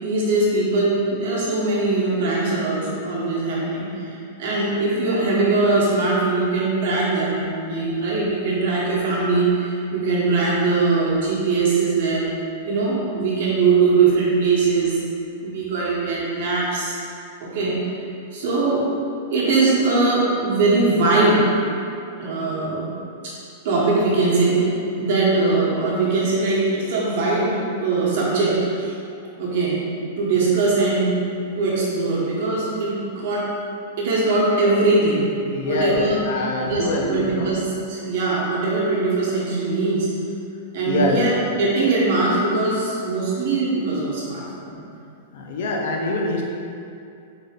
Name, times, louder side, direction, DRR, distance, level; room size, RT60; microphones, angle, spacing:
voice 1, 0.0-12.3 12.6-15.0 15.4-17.0 17.4-17.9 18.3-18.8 19.3-21.5 22.2-22.9 23.2-23.3 23.6-28.9 29.4-29.8 30.2-31.2 31.6-33.5 34.0-35.3 35.6-36.2 36.6-37.6 37.9-40.1 40.7-44.8, right 3 dB, 50° right, -6 dB, 1.0 m, -21 dB
voice 2, 35.5-37.5 40.9-41.3 45.3-46.4, left 2 dB, 55° left, -1 dB, 0.5 m, -24 dB
3.8 x 2.7 x 3.6 m, 2.6 s
supercardioid pair, 175°, 0 cm